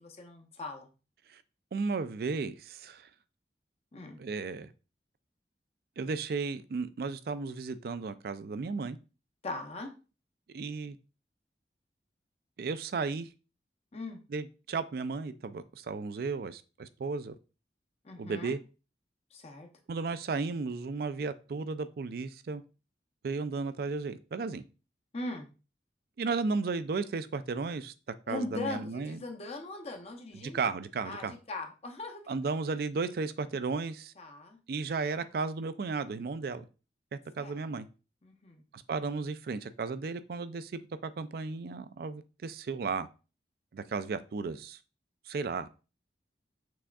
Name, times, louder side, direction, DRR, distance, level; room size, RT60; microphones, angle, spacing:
voice 1, 0.2-0.9 3.9-4.2 9.4-9.9 13.9-14.2 18.0-18.5 19.3-19.7 25.1-25.5 28.3-30.7 31.0-32.2 34.2-34.6 37.4-37.6 38.2-38.6, left 2 dB, 35° left, 0.7 m, -40 dB
voice 2, 1.7-3.1 4.2-4.7 6.0-9.0 10.5-11.0 12.6-13.3 14.3-17.3 18.2-18.6 19.9-22.6 23.2-24.6 26.2-27.9 28.3-29.2 30.3-31.3 32.3-34.1 34.7-36.7 37.1-37.9 38.7-43.1 43.7-44.8 45.3-45.7, right 4 dB, 55° right, 0.4 m, -34 dB
6.1 x 3.5 x 2.3 m
head